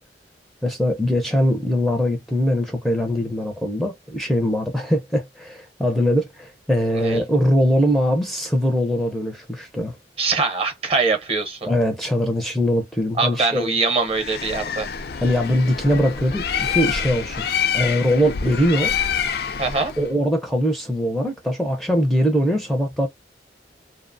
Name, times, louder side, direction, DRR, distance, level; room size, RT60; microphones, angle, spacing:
voice 1, 0.6-10.0 11.7-13.7 15.2-17.5 17.7-18.9 20.0-23.1, equal, ahead, 0.5 m, -21 dB
voice 2, 10.2-11.7 13.2-14.9 19.6-19.9, right 4 dB, 35° right, 0.7 m, -23 dB
Bird, 14.1-20.1, left 7 dB, 60° left, 0.4 m, -26 dB
2.8 x 2.0 x 2.5 m
head